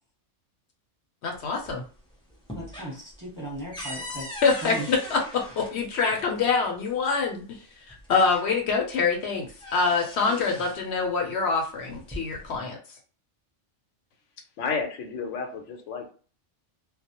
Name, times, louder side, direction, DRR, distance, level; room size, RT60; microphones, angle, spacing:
voice 1, 1.2-1.8 4.4-7.6 7.9-12.8, left 4 dB, 65° left, 0.8 m, -25 dB
sound 1, 1.3-2.0 2.3-6.3 7.4-7.5 7.9-8.8 9.2-10.9 11.8-12.6, equal, 5° left, 0.4 m, -41 dB
voice 2, 2.5-4.3 4.6-4.9, right 1 dB, 20° right, 0.9 m, -37 dB
voice 3, 14.6-16.1, left 5 dB, 90° left, 1.0 m, -31 dB
2.2 x 2.0 x 2.8 m
omnidirectional pair, 1.2 m